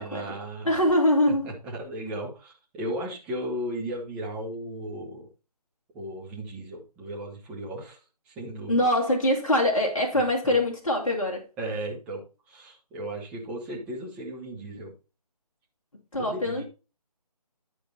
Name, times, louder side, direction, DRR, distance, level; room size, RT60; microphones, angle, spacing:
voice 1, 0.0-0.8 1.4-5.3 5.9-8.9 10.1-10.5 11.6-14.9 16.2-16.6, right 1 dB, 5° right, 1.0 m, -36 dB
voice 2, 0.7-1.5 8.7-11.5 16.1-16.6, left 1 dB, 50° left, 2.2 m, -23 dB
11.0 x 4.9 x 4.1 m
figure-of-eight pair, 155°, 21 cm